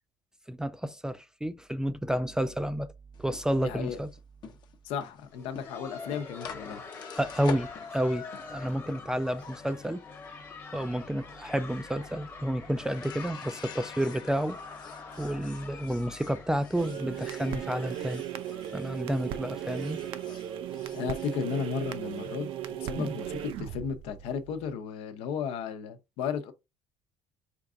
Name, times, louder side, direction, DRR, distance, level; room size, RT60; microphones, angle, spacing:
voice 1, 0.5-2.9 3.2-4.1 7.1-10.0 10.7-14.6 15.2-18.2 18.7-20.0 23.0-23.2, right 1 dB, 5° right, 0.3 m, -30 dB
sound 1, 3.1-19.3 19.6-22.2, left 7 dB, 45° left, 0.8 m, -48 dB
voice 2, 3.6-4.0 4.8-6.8 20.7-26.5, left 7 dB, 80° left, 0.8 m, -34 dB
Laughter, 5.2-20.9 21.1-21.2 21.8-21.9 22.5-22.7 23.8-23.9, left 4 dB, 25° left, 1.0 m, -46 dB
sound 2, 16.8-24.7, right 11 dB, 65° right, 0.5 m, -37 dB
4.5 x 2.4 x 3.7 m
cardioid pair, 120°, 10 cm